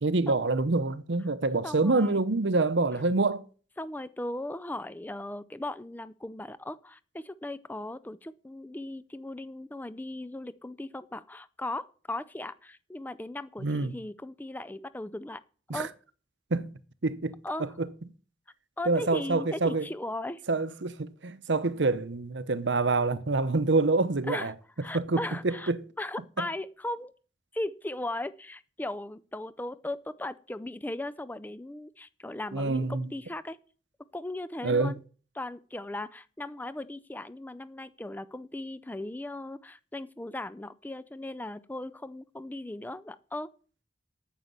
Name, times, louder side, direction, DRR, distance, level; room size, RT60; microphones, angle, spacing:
voice 1, 0.0-3.4 13.6-13.9 15.7-15.9 16.5-16.7 17.0-17.9 18.9-19.9 20.5-24.5 24.9-25.8 26.4-26.5 32.5-33.1 34.6-34.9, right 3 dB, 75° right, 0.8 m, -26 dB
voice 2, 1.6-2.2 2.9-3.0 3.8-15.4 15.7-15.9 17.4-17.8 18.8-20.4 24.3-24.5 24.8-25.7 26.0-27.1 27.5-33.6 34.1-35.0 35.3-43.5, left 1 dB, 10° left, 0.4 m, -37 dB
9.3 x 7.2 x 8.0 m
head